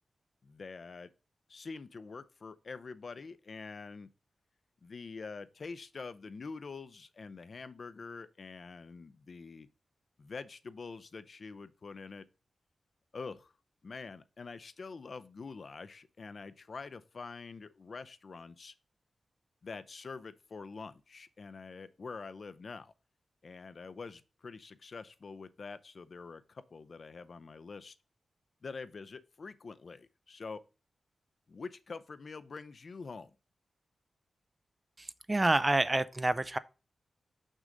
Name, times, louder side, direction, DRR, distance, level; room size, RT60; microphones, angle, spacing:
voice 1, 0.4-1.1 1.5-4.1 4.8-9.7 10.2-12.2 13.1-13.5 13.8-18.7 19.6-22.9 23.4-27.9 28.6-30.6 31.5-33.3, left 4 dB, 45° left, 0.5 m, -45 dB
voice 2, 35.0-36.6, right 2 dB, 20° right, 0.3 m, -28 dB
6.5 x 6.2 x 3.8 m
wide cardioid pair, 170°, 0 cm